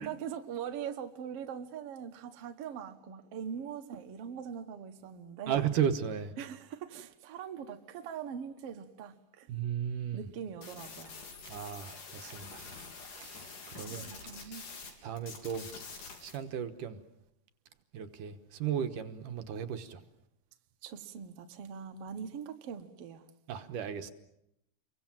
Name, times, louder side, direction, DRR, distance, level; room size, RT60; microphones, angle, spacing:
voice 1, 0.0-5.8 6.4-9.5 10.1-11.2 13.8-14.6 20.8-23.2, right 8 dB, 55° right, 2.1 m, -42 dB
voice 2, 5.5-6.3 9.5-10.2 11.5-12.9 13.1-14.1 14.4-14.6 15.0-15.7 16.2-17.0 17.9-20.0 23.5-24.1, right 8 dB, 75° right, 2.7 m, -35 dB
sound 1, 10.6-14.9 15.2-16.4, left 4 dB, 70° left, 5.2 m, -46 dB
29.0 x 23.5 x 7.6 m
omnidirectional pair, 3.9 m